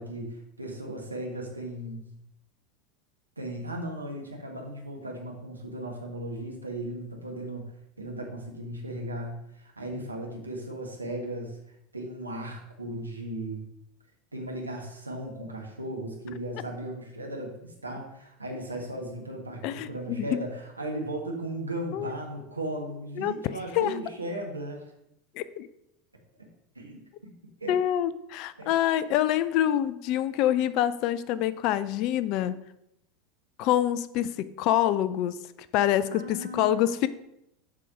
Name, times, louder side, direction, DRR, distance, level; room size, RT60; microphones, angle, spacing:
voice 1, 0.0-2.1 3.4-7.7 8.0-11.6 11.9-13.7 14.3-24.8 26.7-27.3 27.6-27.8 28.6-28.7 36.1-37.1, right 1 dB, 85° right, 1 dB, 1.5 m, -36 dB
voice 2, 19.6-20.4 21.9-22.1 23.2-23.9 25.4-25.7 27.7-32.6 33.6-35.4 35.7-37.1, left 12 dB, 50° left, 15 dB, 0.4 m, -26 dB
7.5 x 4.9 x 5.5 m, 0.81 s
figure-of-eight pair, 80°, 0 cm